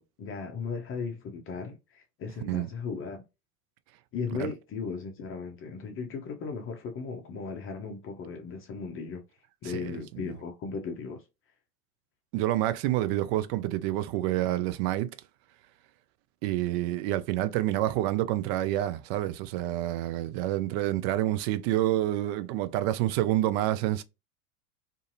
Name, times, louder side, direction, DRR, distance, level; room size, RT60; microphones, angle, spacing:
voice 1, 0.0-3.2 4.1-9.2 9.6-11.2, left 5 dB, 30° left, 0.6 m, -36 dB
voice 2, 9.6-10.3 12.3-15.2 16.4-24.0, right 14 dB, 45° right, 0.4 m, -28 dB
2.6 x 2.5 x 2.5 m
hypercardioid pair, 85°, 44 cm